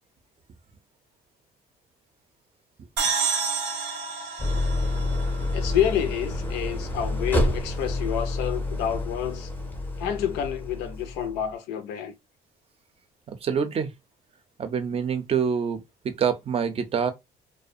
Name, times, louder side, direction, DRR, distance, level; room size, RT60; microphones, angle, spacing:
sound 1, 3.0-6.5, right 5 dB, 90° right, 0.7 m, -30 dB
Idling, 4.4-11.4, left 1 dB, 10° left, 0.5 m, -28 dB
voice 1, 5.5-9.5 10.0-12.1, left 10 dB, 90° left, 0.5 m, -28 dB
voice 2, 13.4-13.9 14.6-17.1, right 7 dB, 35° right, 0.5 m, -26 dB
2.4 x 2.1 x 2.6 m
cardioid pair, 110°, 17 cm